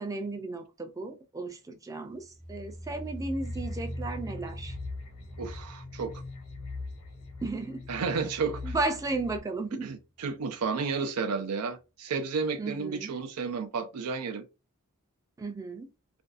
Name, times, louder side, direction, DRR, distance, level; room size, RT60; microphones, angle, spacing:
voice 1, 0.0-4.8 7.4-7.9 8.6-9.9 12.6-13.2 15.4-15.9, right 3 dB, 15° right, 0.4 m, -34 dB
sound 1, 2.1-9.2 9.5-10.0 10.3-10.4, equal, 35° right, 0.9 m, -43 dB
sound 2, 3.3-9.4, left 3 dB, 90° left, 0.9 m, -42 dB
voice 2, 5.4-6.2 7.9-8.7 9.8-14.5, right 5 dB, 85° right, 0.5 m, -32 dB
2.5 x 2.3 x 2.4 m
head